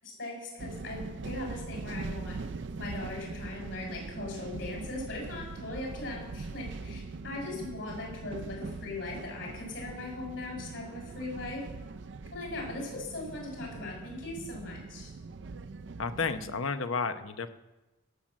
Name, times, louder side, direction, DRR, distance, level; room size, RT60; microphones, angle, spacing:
voice 1, 0.0-2.4 2.8-11.6 12.3-15.1, left 2 dB, 70° left, -1 dB, 6.2 m, -39 dB
sound 1, 0.6-16.6, right 3 dB, 60° right, 0.5 m, -42 dB
voice 2, 16.0-17.5, left 5 dB, 90° left, 10 dB, 0.9 m, -32 dB
16.5 x 7.5 x 7.4 m, 1.1 s
head